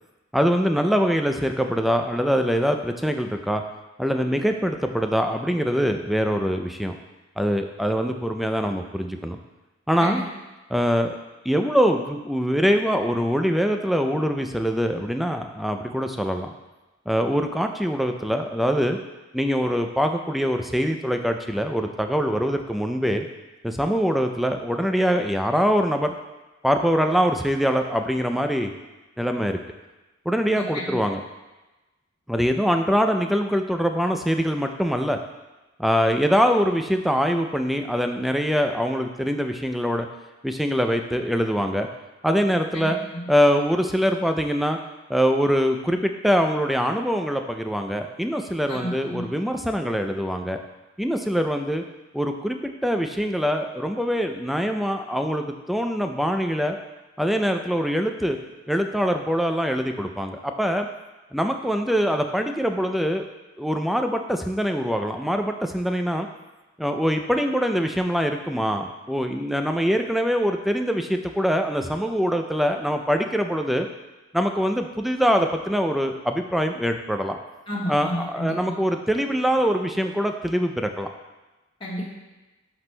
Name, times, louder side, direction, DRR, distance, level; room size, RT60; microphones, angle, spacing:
voice 1, 0.3-3.6 4.0-7.0 7.4-9.4 9.9-10.2 10.7-11.1 11.4-16.5 17.1-19.0 19.3-23.3 23.6-26.1 26.6-28.7 29.2-29.6 30.3-31.2 32.3-35.2 35.8-40.1 40.4-41.9 42.2-43.0 43.3-44.8 45.1-50.6 51.0-51.8 52.1-56.8 57.2-58.4 58.7-60.9 61.3-63.3 63.6-66.3 66.8-73.9 74.3-77.4 77.9-81.1, equal, ahead, 5 dB, 0.3 m, -23 dB
voice 2, 30.5-30.9 42.7-43.3 48.7-49.3 77.7-78.7 81.8-82.1, equal, 25° left, -6 dB, 1.3 m, -31 dB
11.0 x 6.1 x 2.2 m, 1.1 s
head